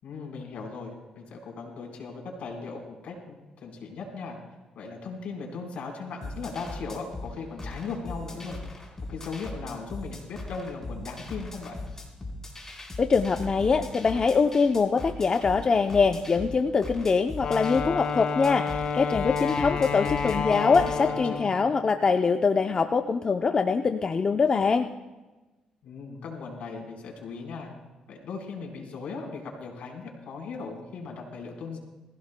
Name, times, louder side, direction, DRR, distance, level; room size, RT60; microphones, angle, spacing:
voice 1, 0.0-4.4 4.7-8.6 9.1-11.8 19.4-21.5 25.8-27.7 28.1-31.8, left 4 dB, 75° left, 0 dB, 4.2 m, -38 dB
sound 1, 6.2-21.0, left 2 dB, 20° left, 4.0 m, -39 dB
voice 2, 13.0-24.9, left 5 dB, 35° left, 6 dB, 0.6 m, -23 dB
Wind instrument woodwind instrument, 17.4-21.7, left 6 dB, 60° left, 1.5 m, -30 dB
22.0 x 16.0 x 2.2 m, 1.2 s
cardioid pair, 95°, 2 cm